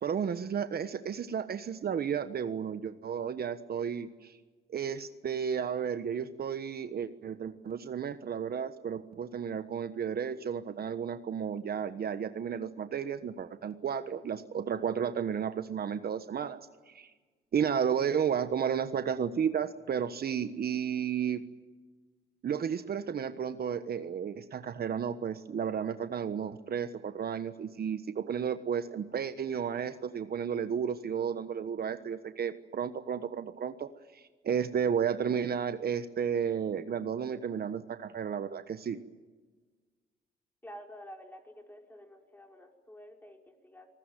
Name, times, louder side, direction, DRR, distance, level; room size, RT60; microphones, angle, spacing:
voice 1, 0.0-4.4 4.7-16.6 16.9-17.1 17.5-21.4 22.4-39.0, right 7 dB, 50° right, 10 dB, 1.3 m, -33 dB
voice 2, 40.6-43.9, equal, 10° left, 2 dB, 5.5 m, -50 dB
26.0 x 20.0 x 9.2 m, 1.3 s
cardioid pair, 90°, 20 cm